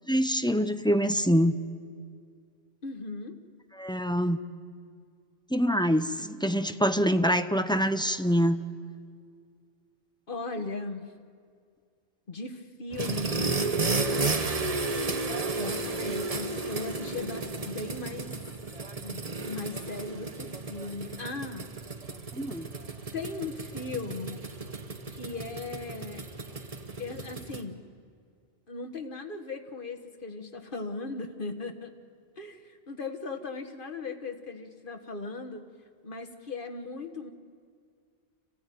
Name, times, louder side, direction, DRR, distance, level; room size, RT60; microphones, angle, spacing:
voice 1, 0.1-1.6 3.8-4.4 5.5-8.6 22.3-22.7, equal, 5° left, 9 dB, 0.5 m, -25 dB
voice 2, 2.8-3.4 10.3-11.1 12.3-13.5 15.5-18.3 18.9-21.7 23.1-24.5 25.1-26.2 27.0-27.8 28.7-31.9 32.4-35.6 36.0-37.3, left 3 dB, 45° left, 6 dB, 1.7 m, -38 dB
sound 1, 12.9-27.6, right 3 dB, 30° right, 1.2 m, -33 dB
27.0 x 16.0 x 9.4 m, 2.1 s
omnidirectional pair, 1.2 m